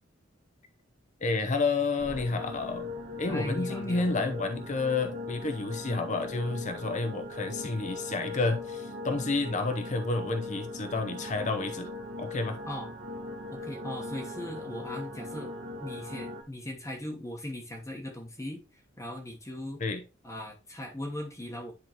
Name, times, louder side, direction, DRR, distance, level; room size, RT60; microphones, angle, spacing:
voice 1, 1.2-2.9 3.2-11.9 12.2-12.6 19.8-20.0, left 3 dB, 40° left, 0.7 m, -30 dB
sound 1, 2.0-16.4, left 2 dB, 60° right, 1.4 m, -40 dB
voice 2, 3.3-4.0 12.7-12.9 13.5-15.6 15.8-19.8 20.2-21.7, left 1 dB, 15° left, 1.0 m, -39 dB
10.0 x 3.7 x 2.9 m
head